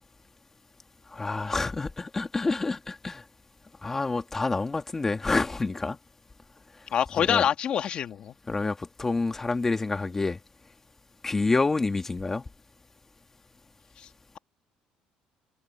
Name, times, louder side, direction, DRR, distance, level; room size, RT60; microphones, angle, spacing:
voice 1, 1.1-3.2 3.8-6.0 7.2-7.5 8.5-10.4 11.2-12.4, left 3 dB, 15° left, 2.1 m, -28 dB
voice 2, 6.9-8.3 14.0-14.1, left 9 dB, 45° left, 2.1 m, -26 dB
cardioid pair, 150°, 2 cm